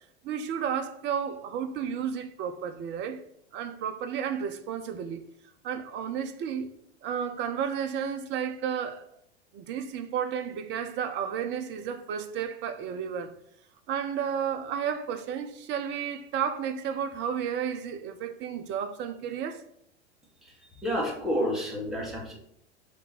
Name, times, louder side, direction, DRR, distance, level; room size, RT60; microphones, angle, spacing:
voice 1, 0.2-3.2 3.5-5.2 5.6-6.7 7.0-9.1 9.5-13.3 13.9-19.6, right 8 dB, 30° right, 0.8 m, -32 dB
voice 2, 20.8-22.3, equal, ahead, 2.1 m, -29 dB
5.9 x 3.6 x 5.8 m
figure-of-eight pair, 85°, 35 cm